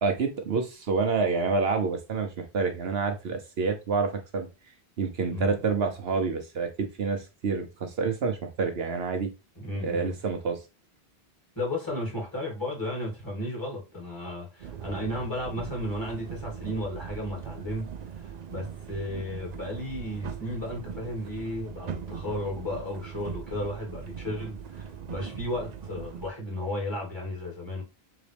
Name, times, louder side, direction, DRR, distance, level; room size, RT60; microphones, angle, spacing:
voice 1, 0.0-4.5 5.0-9.3 9.8-10.6, right 4 dB, 70° right, 1.0 m, -28 dB
voice 2, 9.6-10.1 11.6-17.9 18.2-27.8, left 1 dB, 20° left, 2.5 m, -34 dB
sound 1, 14.6-26.3, right 7 dB, 55° right, 0.5 m, -40 dB
4.0 x 3.8 x 3.4 m
omnidirectional pair, 1.1 m